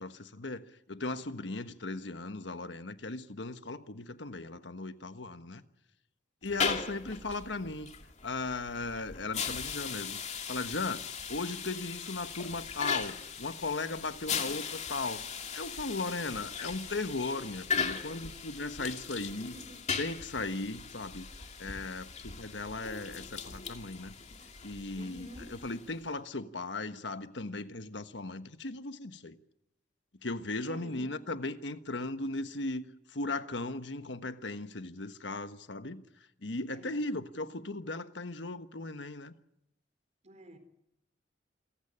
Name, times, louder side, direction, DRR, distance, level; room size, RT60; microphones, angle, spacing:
voice 1, 0.0-5.6 6.4-7.9 8.2-10.2 10.5-11.0 11.3-15.3 15.5-19.5 20.0-21.3 21.6-24.1 24.6-25.3 25.6-29.4 30.2-36.0 36.4-39.3, left 3 dB, 70° left, 1.3 m, -37 dB
sound 1, 6.4-26.0, left 6 dB, 40° left, 2.4 m, -38 dB
voice 2, 6.5-6.9 19.2-19.9 24.9-25.6 30.6-31.2 36.7-37.2 40.2-40.6, equal, 40° right, 4.2 m, -50 dB
27.5 x 16.0 x 9.8 m
head